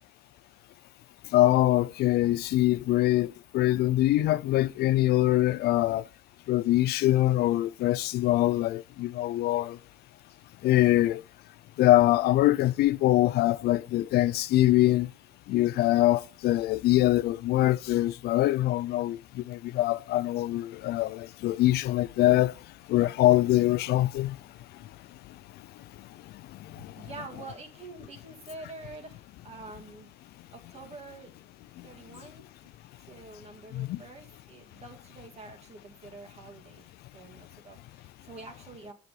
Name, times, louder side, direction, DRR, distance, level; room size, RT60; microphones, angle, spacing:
voice 1, 1.3-6.0 6.5-9.8 10.6-11.2 11.8-15.1 15.5-22.5 22.9-24.4 26.7-26.9 33.7-34.0, left 15 dB, 70° left, 0.4 m, -24 dB
voice 2, 26.9-30.1 30.5-31.3 31.8-32.4 33.1-36.9 37.1-38.9, right 3 dB, 40° right, 2.2 m, -46 dB
6.7 x 6.2 x 7.6 m
cardioid pair, 110°, 17 cm